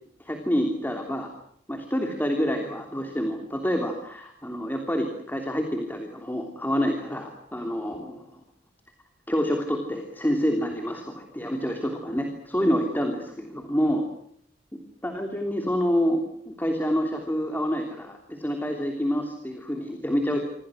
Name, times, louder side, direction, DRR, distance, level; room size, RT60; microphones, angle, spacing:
voice 1, 0.2-1.3 1.7-8.2 9.3-14.1 14.7-20.4, equal, 10° left, 3 dB, 3.2 m, -27 dB
27.5 x 26.5 x 6.4 m, 0.66 s
head